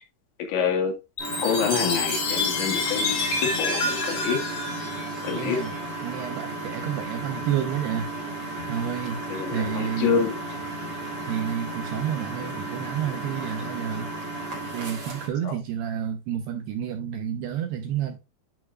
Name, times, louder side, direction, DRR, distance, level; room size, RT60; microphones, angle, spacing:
voice 1, 0.5-0.9 1.4-4.4 5.2-5.6 9.3-10.4 15.4-15.6, left 6 dB, 70° left, 4.0 m, -27 dB
Chime, 1.2-5.7, left 3 dB, 40° left, 2.8 m, -28 dB
Engine, 1.2-15.3, right 2 dB, 35° right, 3.4 m, -34 dB
voice 2, 5.3-8.1 8.7-9.2 9.5-10.1 10.9-14.1 14.7-18.2, right 9 dB, 75° right, 2.5 m, -30 dB
11.0 x 5.7 x 2.4 m
omnidirectional pair, 5.5 m